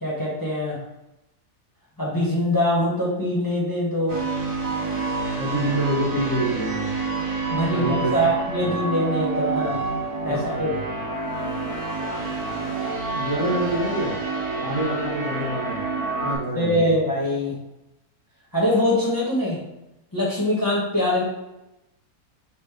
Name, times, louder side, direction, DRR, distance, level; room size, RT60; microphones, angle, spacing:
voice 1, 0.0-0.8 2.0-4.2 7.5-9.8 10.2-10.7 16.5-17.5 18.5-19.6 20.1-21.2, left 1 dB, 15° left, -6 dB, 1.1 m, -23 dB
sound 1, 4.1-16.4, right 3 dB, 25° right, 1.3 m, -28 dB
voice 2, 5.4-6.9 7.6-8.3 8.6-8.7 9.7-9.9 10.3-10.8 13.1-14.2 14.6-15.9 16.2-16.9, right 1 dB, 55° right, -4 dB, 1.1 m, -27 dB
4.2 x 2.6 x 4.8 m, 0.91 s
omnidirectional pair, 1.7 m